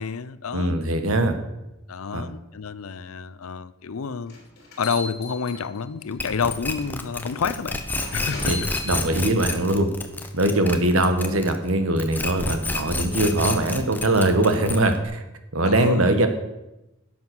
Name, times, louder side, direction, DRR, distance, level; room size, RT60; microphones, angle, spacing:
voice 1, 0.0-0.8 1.9-4.3 4.8-7.8 8.1-8.7 15.6-16.1, left 5 dB, 90° left, 0.6 m, -29 dB
voice 2, 0.5-1.4 2.1-2.2 8.5-9.9 10.3-15.2 15.5-16.3, right 1 dB, 80° right, 1.3 m, -21 dB
sound 1, 4.3-6.0 6.8-7.0 8.0-9.0, left 2 dB, 50° left, 3.2 m, -36 dB
sound 2, 6.2-11.7 12.0-15.0, left 2 dB, 10° left, 0.8 m, -29 dB
12.0 x 7.7 x 6.0 m
head